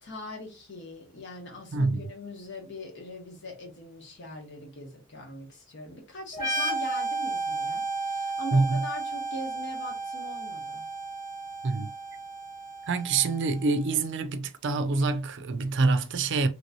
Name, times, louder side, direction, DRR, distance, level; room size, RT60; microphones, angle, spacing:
voice 1, 0.0-10.9, left 1 dB, 60° left, 1.2 m, -41 dB
voice 2, 1.7-2.0 8.5-8.8 11.6-11.9 12.9-16.5, right 3 dB, 60° right, 0.4 m, -26 dB
sound 1, 6.3-13.8, right 3 dB, 40° left, 1.2 m, -33 dB
3.0 x 3.0 x 2.6 m
head